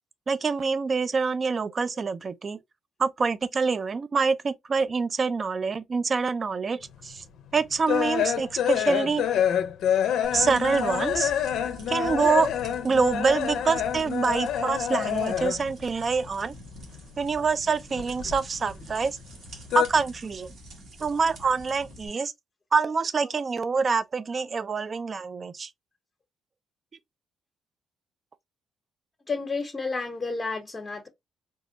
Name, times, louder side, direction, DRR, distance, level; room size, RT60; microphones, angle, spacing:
voice 1, 0.3-2.6 3.0-7.2 7.5-9.3 10.3-11.3 11.9-12.5 12.8-16.6 17.2-19.2 19.7-20.5 21.0-22.3 22.7-25.7, right 5 dB, 40° right, 0.3 m, -26 dB
sound 1, 7.0-15.8 16.0-17.3 17.5-18.9 19.2-19.9, left 9 dB, 75° left, 0.4 m, -27 dB
sound 2, 10.2-22.1, equal, 70° right, 1.4 m, -45 dB
voice 2, 29.3-31.1, left 4 dB, 25° left, 0.8 m, -31 dB
3.5 x 2.0 x 2.5 m
cardioid pair, 90°, 0 cm